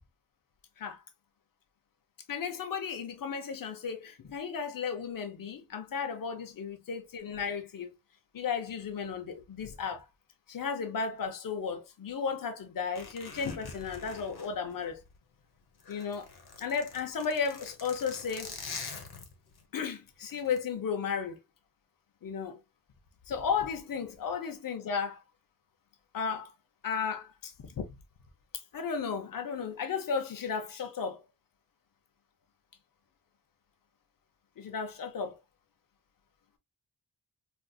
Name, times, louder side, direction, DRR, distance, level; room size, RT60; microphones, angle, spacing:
voice 1, 2.3-7.9 8.3-10.1 10.5-15.0 15.9-16.3 16.6-18.5 19.7-21.4 22.2-22.6 23.3-25.2 26.1-26.5 26.8-27.8 28.7-31.2 34.6-35.4, left 6 dB, 60° left, 0.7 m, -34 dB
Zipper (clothing), 12.9-15.3 15.7-19.6 20.3-20.6, left 5 dB, 90° left, 1.0 m, -45 dB
3.9 x 2.5 x 2.2 m
wide cardioid pair, 150°, 37 cm